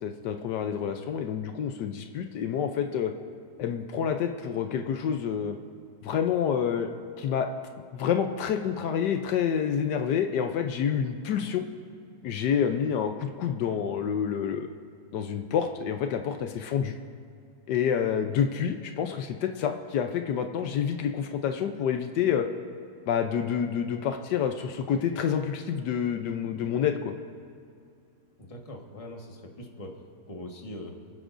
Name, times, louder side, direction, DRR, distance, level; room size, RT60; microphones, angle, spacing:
voice 1, 0.0-3.1 3.6-5.6 6.0-6.9 7.2-7.5 7.9-11.7 12.2-14.7 15.1-16.9 17.7-22.4 23.1-27.1, left 8 dB, 80° left, 6 dB, 1.3 m, -28 dB
voice 2, 28.4-30.0 30.3-31.0, left 1 dB, 20° left, 1 dB, 1.3 m, -42 dB
29.0 x 9.9 x 2.6 m, 2.4 s
omnidirectional pair, 1.8 m